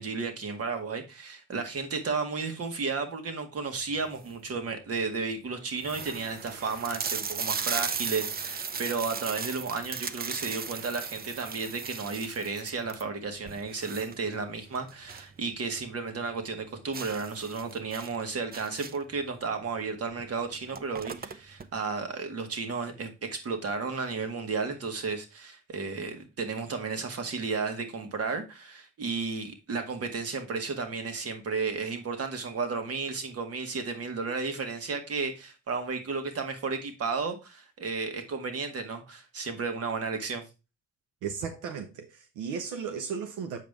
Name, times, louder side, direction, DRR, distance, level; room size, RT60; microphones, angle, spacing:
voice 1, 0.0-40.5, right 4 dB, 50° right, 1.9 m, -33 dB
sound 1, 4.0-4.5 5.1-5.2 5.4-5.5 5.8-15.4 15.7-15.8 16.2-16.3 16.9-19.2 20.1-20.2 20.5-21.7, right 6 dB, 30° right, 0.6 m, -36 dB
voice 2, 41.2-43.6, right 6 dB, 85° right, 0.9 m, -35 dB
7.4 x 5.2 x 3.5 m
cardioid pair, 90°, 30 cm